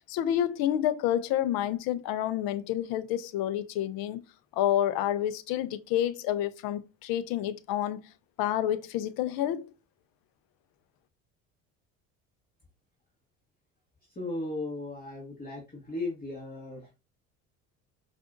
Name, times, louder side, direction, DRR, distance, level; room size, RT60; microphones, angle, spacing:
voice 1, 0.1-4.2 4.5-8.1 8.4-9.7, left 11 dB, 65° left, 0.6 m, -29 dB
voice 2, 14.1-16.9, left 2 dB, 25° left, 1.4 m, -36 dB
4.7 x 2.5 x 2.5 m
hypercardioid pair, 75°, 39 cm